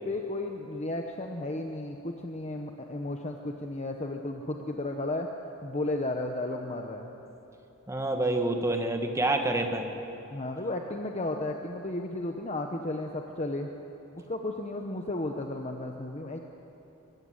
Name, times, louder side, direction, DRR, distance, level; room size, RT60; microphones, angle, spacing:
voice 1, 0.0-5.3 5.6-7.2 10.3-13.7 14.3-16.4, left 2 dB, 30° left, 3 dB, 1.0 m, -33 dB
voice 2, 7.9-9.9, right 2 dB, 15° right, 4 dB, 1.6 m, -27 dB
23.5 x 15.0 x 9.7 m, 3.0 s
head